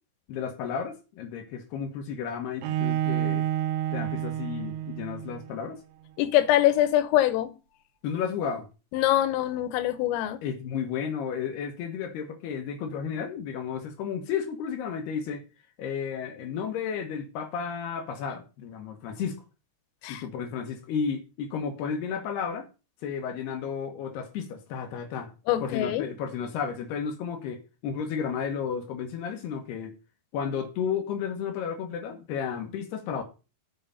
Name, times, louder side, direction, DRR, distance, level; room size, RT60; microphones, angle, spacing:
voice 1, 0.3-3.5 3.9-5.8 8.0-8.7 10.4-15.4 15.8-19.4 20.1-22.7 23.0-25.3 25.6-29.9 30.3-33.2, left 7 dB, 70° left, 2.6 m, -33 dB
Bowed string instrument, 2.6-5.6, right 12 dB, 90° right, 2.4 m, -29 dB
voice 2, 6.2-7.5 8.9-10.4 20.0-20.2 25.5-26.1, left 13 dB, 90° left, 3.5 m, -24 dB
7.7 x 5.8 x 6.7 m
omnidirectional pair, 5.8 m